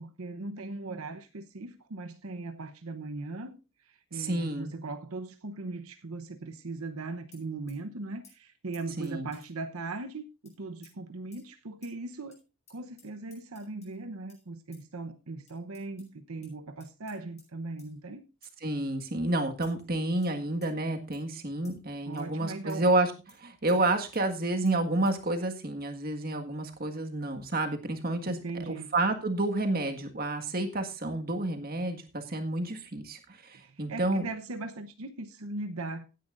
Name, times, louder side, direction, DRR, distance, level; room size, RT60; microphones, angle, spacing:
voice 1, 0.0-12.4 12.7-18.2 22.1-22.9 28.3-28.9 33.5-36.0, right 3 dB, 85° right, 0.9 m, -39 dB
voice 2, 4.1-4.7 9.0-9.3 18.6-34.3, right 2 dB, 45° right, 1.7 m, -30 dB
sound 1, 7.3-7.8 8.2-8.3 8.7-9.5 10.4-10.5 10.8-10.9 11.3-11.4 11.8-11.9 12.3-12.4 12.7-14.0 14.3-14.4 14.7-14.8 15.5-16.1 16.4-16.5 16.8-17.5 17.8-17.9 18.4-18.6 19.0-19.1 19.6-19.8 20.2-20.3 20.6-20.7 21.1-21.2 21.6-21.8 22.2-22.3 22.7-22.8 23.3-23.4 23.7-23.8 24.1-24.2 24.6-24.7 25.0-25.2, left 5 dB, 30° left, 6.2 m, -58 dB
16.5 x 10.0 x 2.6 m
head